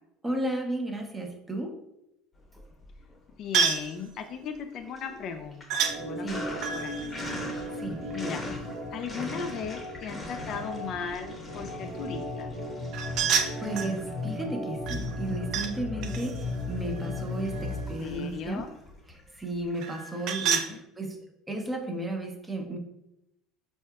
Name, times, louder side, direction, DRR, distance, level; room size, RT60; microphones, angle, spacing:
voice 1, 0.2-1.8 6.2-6.7 7.7-8.1 13.1-13.3 13.6-18.6 19.1-22.8, right 1 dB, 10° right, 2 dB, 0.6 m, -34 dB
Sink (filling or washing), 2.4-3.3 3.7-19.8, left 1 dB, 15° left, 0.8 m, -44 dB
voice 2, 3.4-6.4 6.7-7.2 8.1-8.5 8.9-12.6 17.5-18.7 20.2-20.3 20.6-20.8, left 6 dB, 50° left, 6 dB, 0.4 m, -37 dB
sound 1, 3.5-3.9 5.7-6.0 6.6-8.4 12.9-14.0 14.9-15.7 16.0-17.9 19.8-20.7, right 7 dB, 60° right, 0.3 m, -30 dB
Organ, 5.8-17.9, left 1 dB, 80° right, 1.5 m, -36 dB
4.4 x 2.8 x 2.3 m, 0.83 s
supercardioid pair, 125°, 0 cm